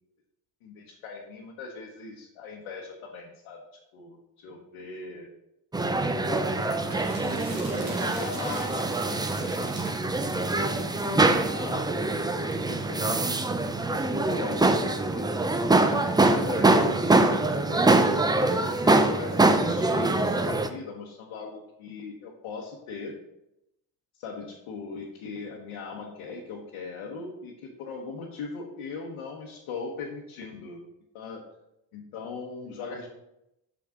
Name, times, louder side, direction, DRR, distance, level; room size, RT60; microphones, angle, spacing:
voice 1, 0.6-3.6 3.9-5.3 6.2-6.9 7.2-11.2 11.5-11.9 12.2-13.3 13.8-15.3 15.8-23.2 24.2-30.8 31.1-31.4 31.9-33.1, left 4 dB, 85° left, -2 dB, 1.1 m, -40 dB
sound 1, 5.7-20.7, right 2 dB, 10° right, 0.4 m, -24 dB
sound 2, 6.8-11.4, right 2 dB, 80° right, 2.1 m, -44 dB
6.0 x 6.0 x 3.7 m, 0.86 s
supercardioid pair, 80°, 49 cm